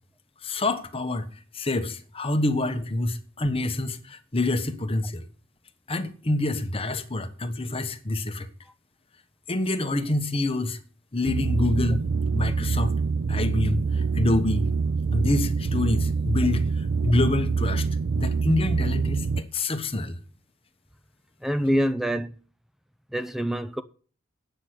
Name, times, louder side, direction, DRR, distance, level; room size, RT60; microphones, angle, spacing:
voice 1, 0.4-1.3 1.5-5.2 5.9-8.5 9.5-10.8 11.1-12.0 12.3-12.9 13.3-14.7 15.1-17.9 18.2-20.2, left 2 dB, 30° left, 1.1 m, -26 dB
sound 1, 11.3-19.4, right 5 dB, 60° right, 0.5 m, -25 dB
voice 2, 21.4-22.3 23.1-23.8, equal, ahead, 0.6 m, -25 dB
9.0 x 6.2 x 8.1 m
head